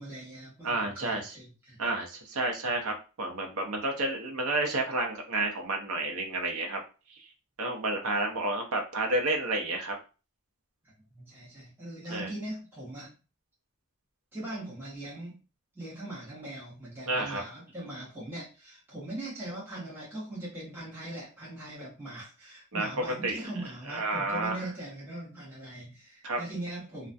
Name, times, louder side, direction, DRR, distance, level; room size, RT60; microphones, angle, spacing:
voice 1, 0.0-1.8 11.1-13.1 14.3-15.4 15.7-27.1, right 1 dB, 10° right, -8 dB, 0.8 m, -41 dB
voice 2, 0.6-1.3 1.8-6.8 7.6-9.9 12.1-12.3 17.1-17.4 22.7-22.9 23.2-23.4 23.9-24.6 26.2-26.4, right 2 dB, 70° right, 2 dB, 0.6 m, -30 dB
2.3 x 2.1 x 2.5 m, 0.33 s
head